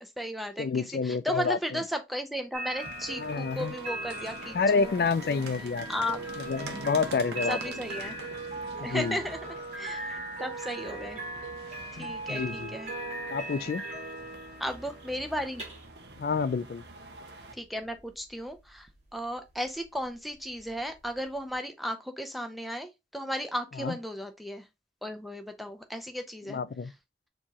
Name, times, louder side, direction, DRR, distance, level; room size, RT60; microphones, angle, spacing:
voice 1, 0.0-4.9 5.4-6.3 7.5-8.2 8.8-11.2 12.0-12.9 14.6-15.6 17.5-24.7 25.0-26.6, equal, ahead, 0.5 m, -35 dB
voice 2, 0.6-1.8 3.2-3.7 4.5-5.9 6.5-7.6 8.9-9.2 12.0-12.7 13.3-13.8 16.2-16.8 23.8-24.0 26.5-26.9, left 4 dB, 55° left, 0.3 m, -28 dB
sound 1, 2.5-21.5, right 2 dB, 40° right, 1.7 m, -40 dB
sound 2, 2.8-17.5, right 2 dB, 80° right, 0.9 m, -46 dB
4.5 x 3.0 x 2.8 m
head